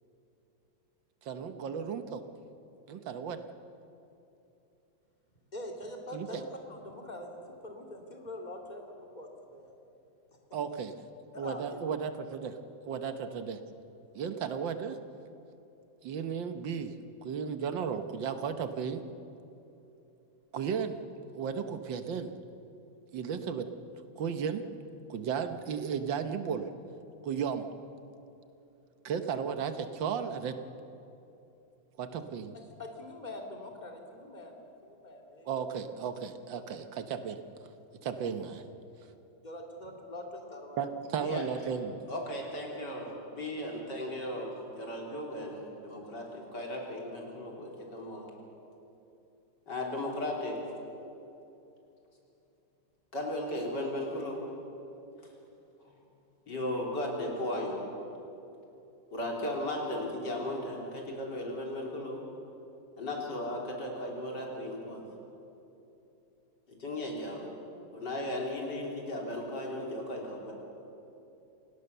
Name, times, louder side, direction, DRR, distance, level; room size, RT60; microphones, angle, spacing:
voice 1, 1.2-2.2 2.9-3.4 6.1-6.4 10.5-10.9 11.4-12.6 12.8-13.6 14.1-15.0 16.0-16.9 17.2-19.0 20.5-21.0 21.3-22.3 23.1-23.7 24.2-24.6 25.1-26.7 27.2-27.7 29.0-30.6 32.0-32.5 35.5-37.4 38.0-38.6 40.8-42.0, right 7 dB, 75° right, 9 dB, 1.8 m, -34 dB
voice 2, 5.5-9.7 10.3-10.4 11.3-11.8 13.0-13.2 14.1-14.2 32.5-35.7 39.0-41.0, left 1 dB, 20° left, 1 dB, 2.7 m, -44 dB
voice 3, 42.1-48.3 49.7-50.6 53.1-54.4 55.8-55.9 56.5-57.8 59.1-62.2 63.0-65.0 66.7-67.5 67.9-70.5, left 1 dB, 60° left, -1 dB, 4.2 m, -36 dB
28.0 x 17.0 x 6.8 m, 2.9 s
omnidirectional pair, 2.1 m